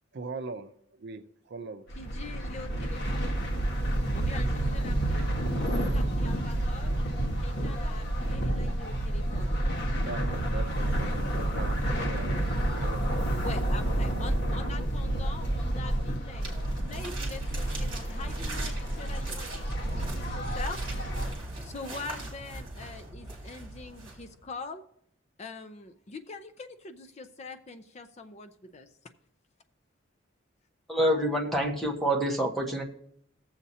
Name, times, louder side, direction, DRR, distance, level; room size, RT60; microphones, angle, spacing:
voice 1, 0.1-1.8 9.9-13.5, right 3 dB, 60° right, 0.5 m, -41 dB
sound 1, 1.9-21.4, right 1 dB, 60° left, 1.6 m, -29 dB
voice 2, 2.0-3.5 4.1-6.9 7.4-9.6 12.4-12.5 13.4-20.8 21.6-24.8 25.4-28.9, left 3 dB, 35° left, 0.5 m, -44 dB
sound 2, 16.4-24.5, right 2 dB, 25° right, 2.3 m, -41 dB
voice 3, 30.9-32.8, right 1 dB, ahead, 1.1 m, -27 dB
18.5 x 7.2 x 2.8 m
head